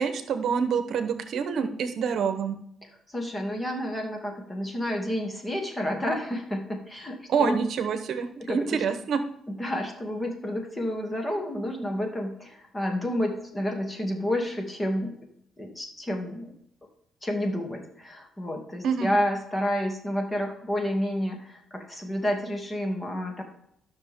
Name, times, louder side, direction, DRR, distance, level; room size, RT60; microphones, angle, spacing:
voice 1, 0.0-2.6 7.3-9.2 18.8-19.1, right 6 dB, 65° right, 9 dB, 1.0 m, -26 dB
voice 2, 3.1-7.6 8.4-8.8 9.5-15.1 15.6-16.5 17.2-23.4, equal, 20° left, 2 dB, 2.5 m, -30 dB
13.5 x 6.2 x 3.6 m, 0.71 s
cardioid pair, 90°, 0 cm